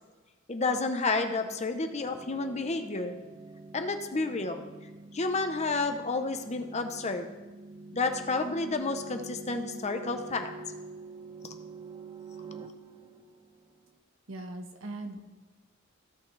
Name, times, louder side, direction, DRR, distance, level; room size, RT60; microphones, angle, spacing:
voice 1, 0.5-3.1 3.7-4.6 5.1-7.3 7.9-10.5 11.4-11.5, left 3 dB, 35° left, 6 dB, 0.7 m, -30 dB
sound 1, 1.2-13.9, right 3 dB, 25° right, 0.4 m, -46 dB
voice 2, 14.3-15.2, right 2 dB, 75° right, 4 dB, 1.2 m, -39 dB
15.5 x 5.7 x 3.3 m, 1.2 s
head